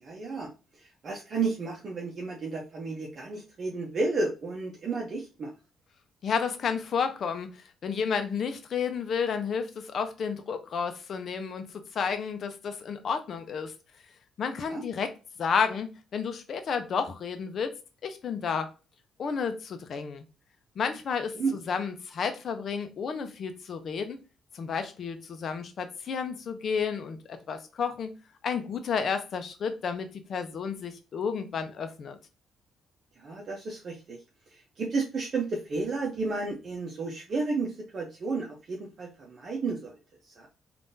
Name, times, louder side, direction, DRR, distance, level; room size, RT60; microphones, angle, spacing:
voice 1, 0.0-5.5 14.7-14.8 21.3-21.6 33.2-34.2 34.5-39.9 40.2-40.5, right 3 dB, 50° right, 0.7 m, -32 dB
voice 2, 6.2-7.5 7.8-11.7 11.9-13.7 14.4-15.1 15.4-17.8 18.0-18.7 19.2-20.3 20.8-24.2 24.5-28.1 28.4-32.2, left 6 dB, 55° left, 0.6 m, -31 dB
3.5 x 2.5 x 2.6 m
cardioid pair, 90°, 0 cm